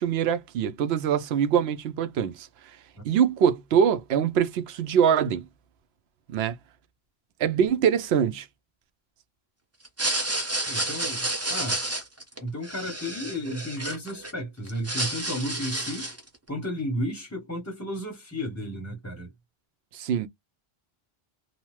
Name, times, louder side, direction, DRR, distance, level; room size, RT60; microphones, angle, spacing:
voice 1, 0.0-2.5 3.0-5.4 6.3-6.6 7.4-8.5 19.9-20.3, right 8 dB, 80° right, 0.8 m, -23 dB
sound 1, 9.8-14.3 14.7-16.3, right 2 dB, 20° right, 0.6 m, -30 dB
voice 2, 10.7-11.8 12.4-16.1 16.5-19.3, equal, 20° left, 0.7 m, -33 dB
2.8 x 2.0 x 3.0 m
omnidirectional pair, 1.0 m